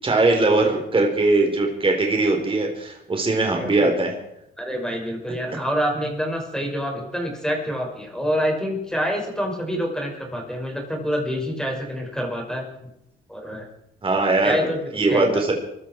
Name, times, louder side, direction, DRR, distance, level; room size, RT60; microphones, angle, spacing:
voice 1, 0.0-4.1 5.5-5.6 14.0-15.5, right 2 dB, 25° right, 2 dB, 4.0 m, -21 dB
voice 2, 3.6-3.9 4.6-12.7 13.3-13.7 14.4-14.8 15.1-15.4, equal, 5° left, 0 dB, 5.7 m, -27 dB
23.5 x 13.5 x 4.6 m, 0.81 s
cardioid pair, 90°, 20 cm